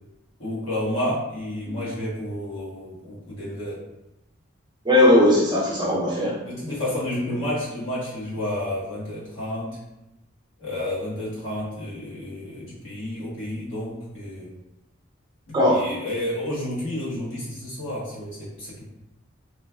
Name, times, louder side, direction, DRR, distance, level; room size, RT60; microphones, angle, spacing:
voice 1, 0.4-3.8 6.4-9.8 10.6-14.5 15.5-18.9, left 1 dB, 75° left, -8 dB, 1.2 m, -30 dB
voice 2, 4.8-6.4 15.5-15.9, left 1 dB, 20° right, -6 dB, 0.6 m, -18 dB
3.1 x 2.2 x 2.4 m, 0.90 s
head